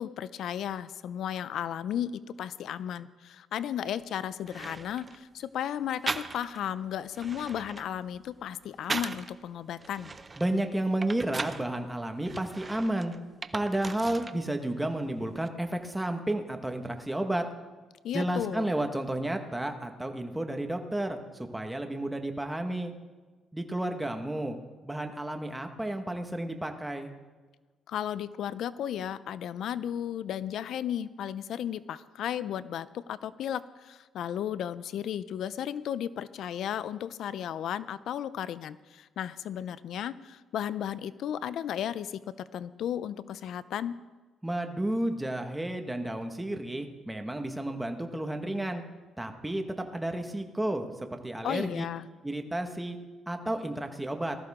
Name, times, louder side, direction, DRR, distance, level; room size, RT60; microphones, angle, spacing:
voice 1, 0.0-10.1 18.0-18.7 27.9-42.2 42.5-44.0 51.4-52.1, left 10 dB, 75° left, 16 dB, 0.5 m, -34 dB
sound 1, 4.0-4.1 4.5-5.2 6.1-6.7 7.0-9.3 9.8-11.7 12.2-14.4 14.7-15.5, right 3 dB, 30° right, 0.7 m, -38 dB
voice 2, 10.4-13.1 13.5-17.4 18.1-22.9 23.5-24.6 24.8-27.1 44.4-48.8 49.2-51.8 52.2-53.0 53.3-54.4, right 1 dB, 10° right, 5 dB, 1.6 m, -32 dB
19.0 x 13.5 x 3.7 m, 1.3 s
cardioid pair, 90°, 0 cm